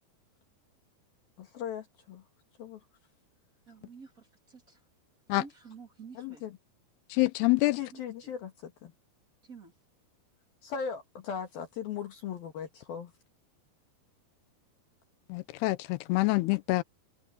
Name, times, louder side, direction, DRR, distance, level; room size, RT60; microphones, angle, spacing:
voice 1, 1.4-2.2 2.6-2.8 6.2-6.5 7.8-8.9 10.6-13.1, left 7 dB, 65° left, 3.5 m, -38 dB
voice 2, 3.7-4.8 5.4-6.4 7.9-8.3 9.4-9.7, right 5 dB, 20° right, 2.9 m, -50 dB
voice 3, 7.1-7.8 15.3-16.8, left 21 dB, 80° left, 2.6 m, -26 dB
open air
omnidirectional pair, 4.9 m